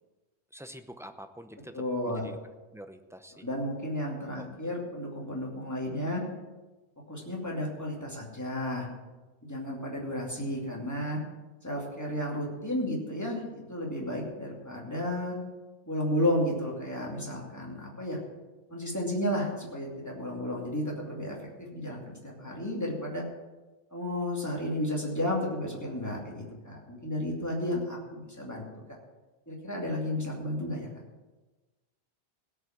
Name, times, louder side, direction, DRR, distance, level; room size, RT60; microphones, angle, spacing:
voice 1, 0.5-2.4 2.7-3.5 4.4-4.7, equal, 5° right, 8 dB, 0.5 m, -46 dB
voice 2, 1.7-2.2 3.3-6.2 7.1-8.9 9.4-11.2 11.6-15.4 15.9-18.2 18.7-23.2 23.9-28.7 29.5-30.9, left 1 dB, 15° left, -2 dB, 2.6 m, -32 dB
17.0 x 5.7 x 7.4 m, 1.2 s
omnidirectional pair, 1.1 m